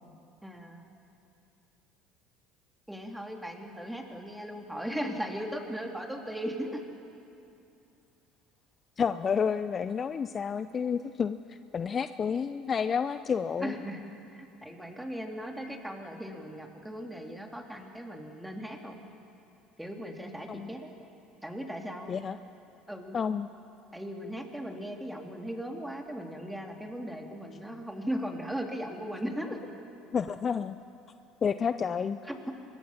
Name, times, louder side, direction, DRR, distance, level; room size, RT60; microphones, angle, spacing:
voice 1, 0.4-0.9 2.9-6.8 13.6-14.0 14.3-19.0 19.8-20.9 21.4-22.2 22.9-23.2 23.9-29.7 32.2-32.5, equal, 5° right, 2 dB, 3.2 m, -38 dB
voice 2, 9.0-13.8 20.5-20.7 22.1-22.4 23.1-23.5 30.1-30.8 31.4-32.2, left 6 dB, 35° left, 12 dB, 0.6 m, -30 dB
25.0 x 22.0 x 5.9 m, 2.7 s
hypercardioid pair, 65°, 0 cm